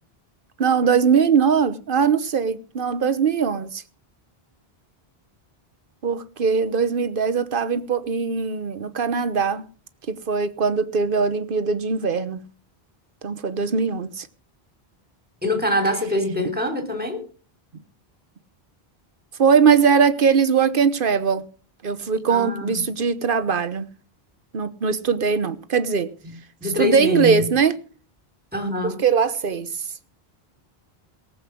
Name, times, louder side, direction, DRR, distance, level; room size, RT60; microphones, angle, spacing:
voice 1, 0.6-3.8 6.0-9.7 10.1-12.4 13.2-14.3 19.4-21.4 21.8-23.9 24.5-26.1 26.8-27.8 28.8-29.7, right 6 dB, 55° right, 1.2 m, -21 dB
voice 2, 15.4-17.2 22.3-22.8 26.6-27.5 28.5-29.0, left 1 dB, 10° right, 3.4 m, -24 dB
19.0 x 7.8 x 6.2 m
omnidirectional pair, 1.1 m